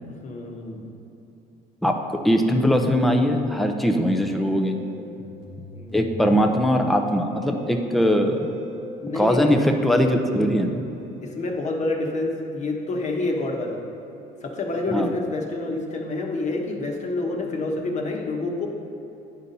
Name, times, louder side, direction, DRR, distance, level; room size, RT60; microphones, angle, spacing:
voice 1, 0.2-0.8 5.7-6.1 9.0-9.6 11.2-13.8 14.4-18.7, left 2 dB, 45° left, 0 dB, 1.2 m, -28 dB
voice 2, 1.8-4.8 5.9-8.5 9.1-10.8 14.9-15.1, equal, ahead, 4 dB, 0.6 m, -21 dB
Musical instrument, 4.7-11.5, right 2 dB, 85° right, 1.5 m, -40 dB
9.9 x 4.2 x 5.3 m, 2.8 s
cardioid pair, 110°, 17 cm